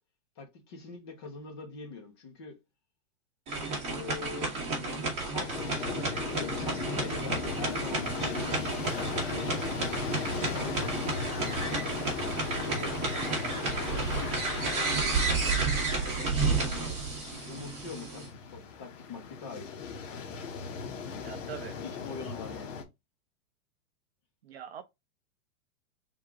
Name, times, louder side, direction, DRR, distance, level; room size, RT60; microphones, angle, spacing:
voice 1, 0.4-2.6 3.8-5.9 6.5-8.9 9.2-10.0 10.5-11.3 12.0-13.0 13.6-14.4 14.7-17.0 17.3-19.8 21.8-22.7, left 4 dB, 20° left, 0.6 m, -44 dB
sound 1, 3.5-18.3, right 3 dB, 15° right, 1.4 m, -32 dB
sound 2, 5.4-22.8, left 5 dB, 60° left, 1.2 m, -37 dB
voice 2, 21.1-21.8 24.4-24.8, right 9 dB, 45° right, 0.5 m, -43 dB
3.7 x 2.8 x 4.6 m
supercardioid pair, 175°, 44 cm